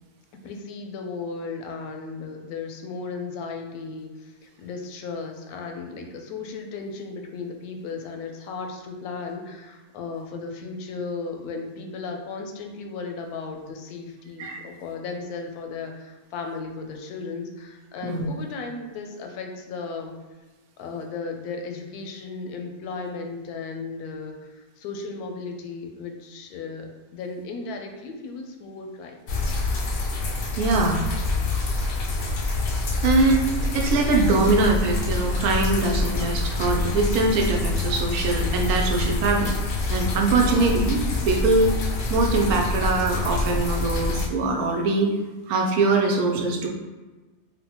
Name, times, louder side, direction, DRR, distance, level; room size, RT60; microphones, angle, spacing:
voice 1, 0.4-20.1 20.8-29.2 40.5-40.8, left 4 dB, 85° left, 3 dB, 1.1 m, -35 dB
sound 1, 29.3-44.3, left 2 dB, 70° left, 0.5 m, -26 dB
voice 2, 30.6-31.0 33.0-39.5 39.9-41.7 42.1-45.1 45.5-46.7, right 3 dB, 80° right, 1 dB, 1.1 m, -22 dB
3.8 x 2.1 x 2.8 m, 1.2 s
omnidirectional pair, 1.6 m